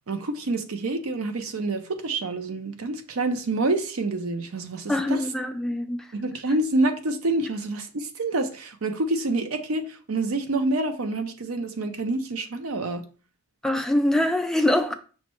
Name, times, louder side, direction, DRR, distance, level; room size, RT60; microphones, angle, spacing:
voice 1, 0.1-5.3 6.1-13.0, right 2 dB, 90° right, 0.7 m, -27 dB
voice 2, 4.9-6.1 13.6-14.9, left 1 dB, ahead, 0.3 m, -24 dB
5.7 x 2.2 x 4.3 m
head